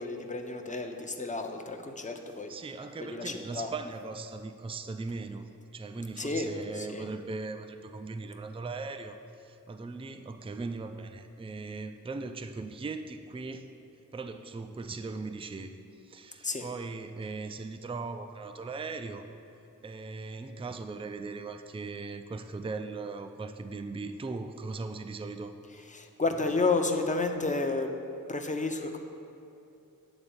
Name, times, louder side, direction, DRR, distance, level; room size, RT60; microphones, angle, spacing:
voice 1, 0.0-2.5 3.0-3.7 6.2-7.1 16.4-16.6 25.9-27.9 28.3-29.0, left 3 dB, 20° left, 4 dB, 0.6 m, -31 dB
voice 2, 2.5-13.7 14.1-15.8 16.0-19.2 19.8-25.5, right 3 dB, 15° right, 7 dB, 0.4 m, -39 dB
8.9 x 4.0 x 7.0 m, 2.8 s
wide cardioid pair, 75°, 35 cm